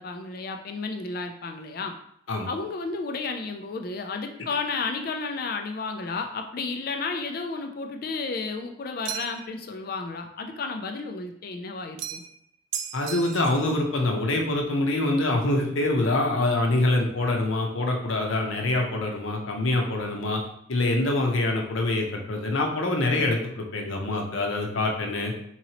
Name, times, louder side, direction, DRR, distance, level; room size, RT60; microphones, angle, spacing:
voice 1, 0.0-2.0 2.5-12.2, left 4 dB, 50° left, 5 dB, 0.3 m, -32 dB
sound 1, 9.0-9.5 12.0-12.4 12.7-13.7, right 9 dB, 70° right, 0.3 m, -35 dB
voice 2, 12.9-20.4 20.7-25.3, left 2 dB, 85° left, 2 dB, 0.7 m, -25 dB
3.9 x 3.0 x 2.8 m, 0.71 s
head